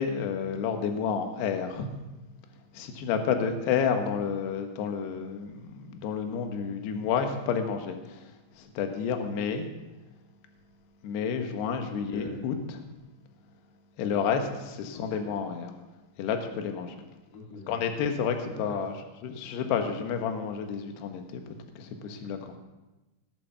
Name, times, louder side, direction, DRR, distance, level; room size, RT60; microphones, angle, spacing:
voice 1, 0.0-1.9 2.7-8.2 8.6-9.7 11.0-12.8 14.0-15.7 16.2-16.9 17.7-18.9 19.2-22.6, left 6 dB, 70° left, 5 dB, 3.0 m, -30 dB
voice 2, 11.9-12.4 14.9-15.2 17.3-17.8 18.5-18.8, left 2 dB, 85° left, -8 dB, 5.9 m, -42 dB
19.5 x 6.9 x 6.9 m, 1.1 s
omnidirectional pair, 5.8 m